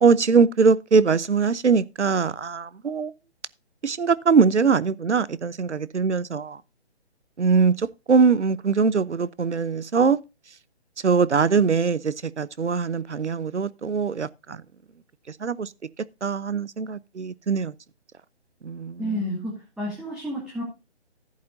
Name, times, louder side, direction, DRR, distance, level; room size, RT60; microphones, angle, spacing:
voice 1, 0.0-3.1 3.8-6.6 7.4-7.8 8.1-10.2 11.0-14.3 15.4-15.7 16.2-17.7 18.6-19.2, right 5 dB, 85° right, 0.8 m, -21 dB
voice 2, 19.0-20.6, equal, ahead, 2.2 m, -30 dB
14.5 x 8.5 x 2.6 m
figure-of-eight pair, 145°, 34 cm